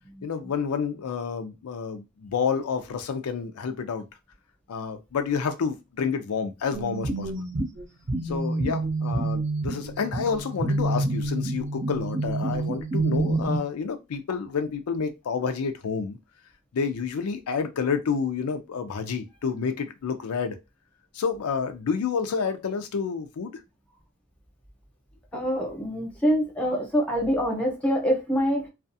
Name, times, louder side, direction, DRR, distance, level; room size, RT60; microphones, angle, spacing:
voice 1, 0.2-4.1 4.7-7.5 8.2-16.2 16.7-20.6 21.1-23.5, left 6 dB, 85° left, 0.4 m, -29 dB
sound 1, 6.7-13.6, right 2 dB, 35° right, 0.5 m, -28 dB
voice 2, 25.3-28.7, equal, 5° left, 0.8 m, -25 dB
2.4 x 2.3 x 2.6 m
head